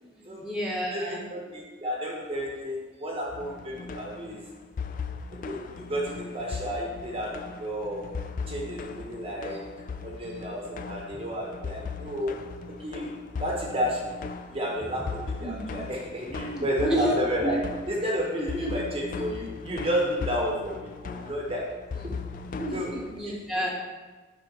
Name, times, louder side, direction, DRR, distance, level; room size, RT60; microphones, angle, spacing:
voice 1, 0.0-1.2 15.4-15.6 16.2-17.6 18.5-18.8 22.0-22.1 22.5-23.7, equal, ahead, -4 dB, 1.0 m, -30 dB
voice 2, 0.9-4.4 5.5-8.2 8.5-9.7 10.0-12.5 12.8-13.1 13.4-14.2 14.5-21.7 22.0-22.2 22.7-22.9, equal, 30° right, -2 dB, 1.0 m, -31 dB
sound 1, 3.3-23.2, left 5 dB, 40° left, 0.3 m, -38 dB
6.8 x 3.5 x 5.3 m, 1.2 s
head